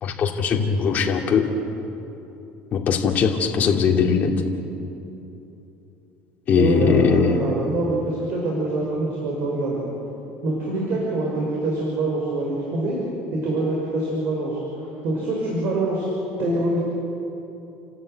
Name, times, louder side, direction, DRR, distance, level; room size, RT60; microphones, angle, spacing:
voice 1, 0.0-1.5 2.7-4.3 6.5-7.4, left 6 dB, 40° left, 1 dB, 2.6 m, -20 dB
voice 2, 6.5-9.8 10.4-13.0 13.3-14.6 15.0-16.1 16.4-16.8, right 2 dB, 50° right, -3 dB, 5.7 m, -24 dB
30.0 x 13.0 x 9.1 m, 3.0 s
cardioid pair, 140°, 4 cm